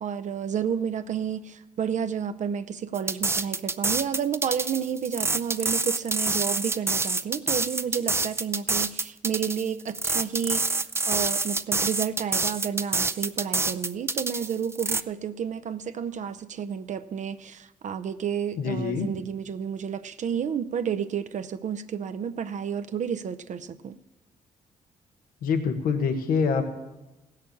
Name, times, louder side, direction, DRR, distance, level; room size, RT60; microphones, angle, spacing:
voice 1, 0.0-24.0, right 7 dB, 55° right, 11 dB, 0.6 m, -31 dB
sound 1, 2.9-15.0, right 3 dB, 15° right, 0.5 m, -27 dB
voice 2, 18.6-19.1 25.4-26.7, left 5 dB, 80° left, 7 dB, 1.1 m, -25 dB
15.5 x 6.6 x 8.4 m, 1.1 s
cardioid pair, 80°, 15 cm